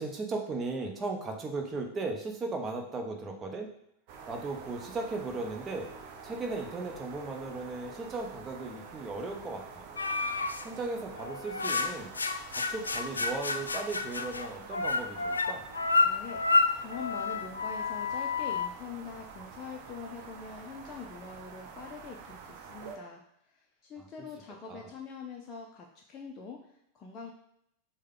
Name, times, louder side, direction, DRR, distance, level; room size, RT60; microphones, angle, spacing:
voice 1, 0.0-3.7 4.3-5.9 6.2-9.8 10.6-12.1 12.5-15.6 24.0-24.3 24.7-24.9, right 3 dB, 20° right, 2 dB, 0.8 m, -37 dB
sound 1, 4.1-23.0, right 5 dB, 45° right, 0.6 m, -48 dB
sound 2, 10.0-10.6 11.2-18.7, left 3 dB, 75° left, 0.3 m, -30 dB
voice 2, 16.0-16.4 16.7-23.2 23.8-26.7 26.9-27.3, left 5 dB, 25° left, 0 dB, 0.5 m, -44 dB
6.4 x 2.2 x 3.7 m, 0.73 s
figure-of-eight pair, 90°, 0 cm